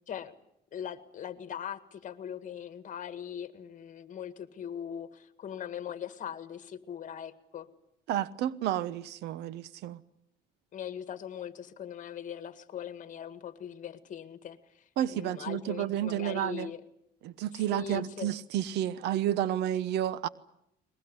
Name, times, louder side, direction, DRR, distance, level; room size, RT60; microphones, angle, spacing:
voice 1, 0.7-7.7 10.7-16.8 17.7-18.3, left 9 dB, 50° left, 1.8 m, -40 dB
voice 2, 8.1-10.0 15.0-16.7 17.2-20.3, right 11 dB, 80° right, 1.0 m, -31 dB
22.5 x 21.0 x 9.6 m
cardioid pair, 110°, 17 cm